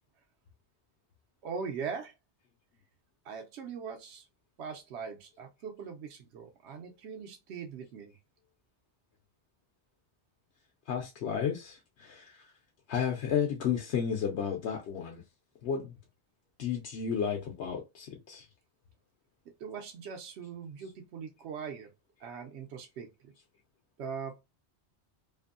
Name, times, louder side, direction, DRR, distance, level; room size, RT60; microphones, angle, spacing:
voice 1, 1.4-2.1 3.2-4.3 4.6-8.1 19.6-21.9 22.2-23.3 24.0-24.4, right 6 dB, 80° right, 0.9 m, -41 dB
voice 2, 10.9-12.5 12.9-15.2 15.6-15.9 16.6-18.5, left 7 dB, 75° left, 0.9 m, -32 dB
2.7 x 2.5 x 2.5 m
omnidirectional pair, 1.1 m